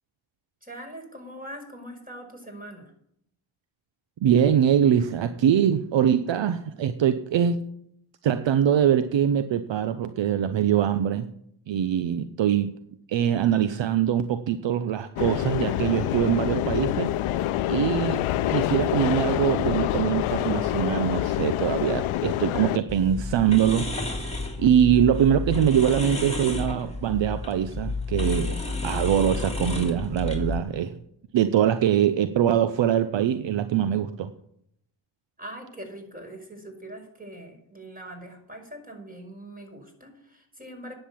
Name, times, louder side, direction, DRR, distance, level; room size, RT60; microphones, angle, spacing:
voice 1, 0.6-2.9 35.4-40.9, right 1 dB, 15° right, 2 dB, 5.3 m, -42 dB
voice 2, 4.2-7.6 8.2-11.3 11.7-12.7 13.1-17.1 17.7-23.9 24.6-30.9 31.3-34.3, right 9 dB, 65° right, 11 dB, 0.9 m, -23 dB
sound 1, 15.2-22.8, left 13 dB, 75° left, 0.7 m, -26 dB
sound 2, 22.9-30.6, left 3 dB, 15° left, 3.3 m, -31 dB
10.0 x 7.8 x 8.5 m, 0.72 s
supercardioid pair, 55°, 49 cm